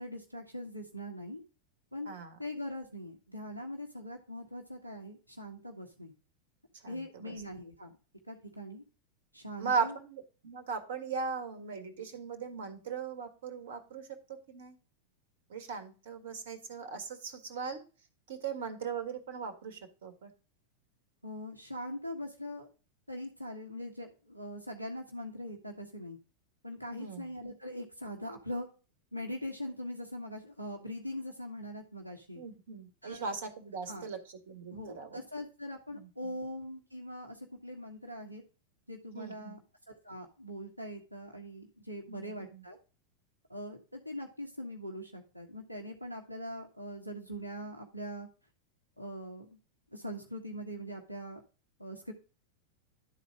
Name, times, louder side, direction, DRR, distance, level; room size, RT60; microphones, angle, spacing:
voice 1, 0.0-1.4 1.9-2.1 2.4-6.1 6.9-7.9 8.3-8.8 9.3-9.9 21.2-22.7 23.1-26.2 26.6-28.7 29.1-32.4 33.0-33.2 33.9-34.1 34.7-38.4 38.9-39.6 39.9-42.8 43.5-48.3 49.0-49.6 49.9-51.4 51.8-52.1, equal, 90° right, 1 dB, 1.4 m, -42 dB
voice 2, 2.0-2.4 6.7-7.4 9.6-14.8 15.5-17.8 18.3-20.3 26.9-27.3 32.3-35.2 35.9-36.4 39.1-39.6 42.1-42.6, right 5 dB, 60° right, 8 dB, 1.8 m, -39 dB
11.5 x 4.2 x 4.9 m, 0.34 s
figure-of-eight pair, 90°, 0 cm